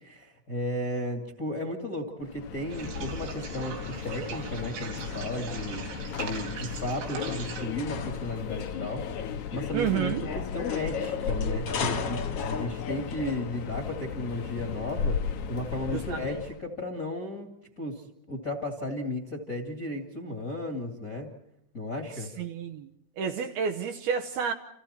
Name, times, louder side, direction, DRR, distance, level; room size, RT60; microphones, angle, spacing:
voice 1, 0.0-5.8 6.2-9.1 9.5-21.3 21.7-22.3, left 1 dB, 30° left, 5 dB, 1.8 m, -34 dB
Subway metro underground, 2.2-16.6, left 6 dB, 80° left, 1.7 m, -35 dB
sound 1, 2.7-7.7, right 6 dB, 90° right, 5.8 m, -40 dB
sound 2, 4.1-14.2, left 4 dB, 55° left, 1.7 m, -40 dB
voice 2, 9.7-10.2 16.1-16.2 22.4-22.9 23.2-24.5, right 7 dB, 70° right, 5 dB, 2.6 m, -29 dB
29.5 x 28.0 x 4.4 m, 0.77 s
omnidirectional pair, 5.4 m